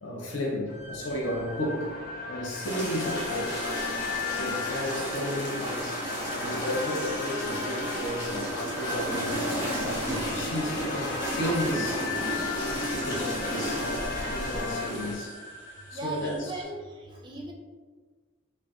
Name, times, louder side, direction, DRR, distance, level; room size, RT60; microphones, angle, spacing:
voice 1, 0.0-2.0 2.3-3.8 4.4-12.1 12.9-15.4 15.9-16.5, left 1 dB, 65° left, -2 dB, 0.7 m, -33 dB
sound 1, 0.7-16.6, left 3 dB, 90° left, 1.1 m, -38 dB
sound 2, 1.4-14.9, left 4 dB, 45° left, 0.4 m, -38 dB
sound 3, 2.6-15.1, right 1 dB, 20° left, 1.3 m, -33 dB
voice 2, 15.9-17.5, right 1 dB, 25° right, 0 dB, 0.5 m, -37 dB
6.0 x 2.2 x 2.6 m, 1.4 s
head